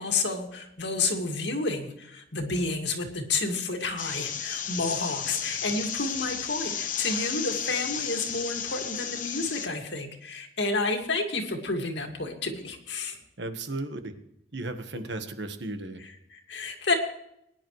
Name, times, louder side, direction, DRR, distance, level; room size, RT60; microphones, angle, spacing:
voice 1, 0.0-13.2 16.0-16.9, left 3 dB, 65° left, 3 dB, 2.2 m, -30 dB
sound 1, 4.0-9.7, left 8 dB, 45° left, 1.1 m, -33 dB
voice 2, 13.4-14.1 14.5-16.0, right 2 dB, 65° right, 7 dB, 1.5 m, -35 dB
21.0 x 10.5 x 3.2 m, 0.77 s
head